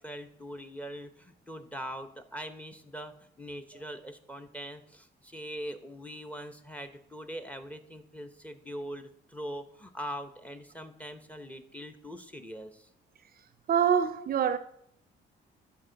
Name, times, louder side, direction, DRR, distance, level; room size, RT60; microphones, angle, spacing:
voice 1, 0.0-12.9, equal, 5° left, 0.8 m, -42 dB
voice 2, 13.7-14.6, right 8 dB, 50° right, 0.4 m, -25 dB
11.5 x 4.6 x 3.9 m
cardioid pair, 90°, 20 cm